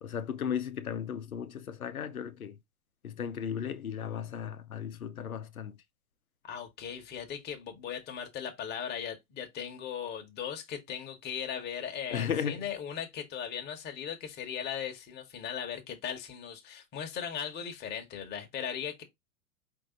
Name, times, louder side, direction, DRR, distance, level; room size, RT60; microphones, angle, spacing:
voice 1, 0.0-2.6 3.0-5.8 12.1-12.7, left 8 dB, 80° left, 0.7 m, -35 dB
voice 2, 6.4-19.0, left 8 dB, 25° left, 1.1 m, -38 dB
5.1 x 2.8 x 3.7 m
figure-of-eight pair, 100°, 42 cm